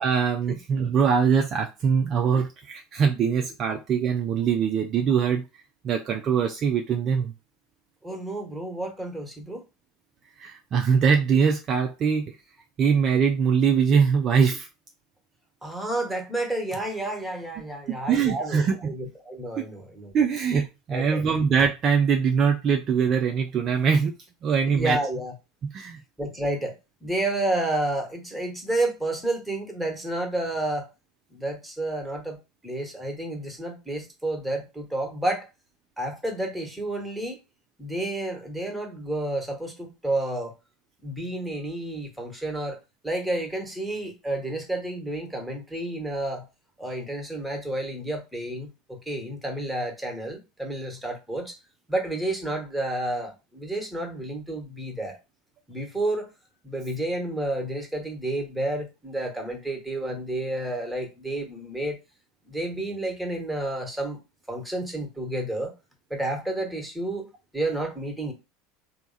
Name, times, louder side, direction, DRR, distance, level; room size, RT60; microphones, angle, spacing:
voice 1, 0.0-5.4 5.8-7.3 10.4-12.2 12.8-14.7 17.9-18.9 19.6-19.7 20.1-24.2 24.4-25.0 25.7-26.0, right 6 dB, 40° right, 0.5 m, -22 dB
voice 2, 8.0-9.6 15.6-20.1 20.9-21.2 24.7-25.3 26.2-26.7 27.0-30.9 31.3-32.4 32.6-35.5 36.0-37.4 37.8-40.5 41.0-42.8 43.0-46.4 46.8-51.5 51.9-55.2 55.7-56.3 56.6-62.0 62.5-64.2 64.5-65.7 66.1-68.3, right 1 dB, 5° right, 1.3 m, -30 dB
3.3 x 2.1 x 4.0 m
figure-of-eight pair, 75°, 0 cm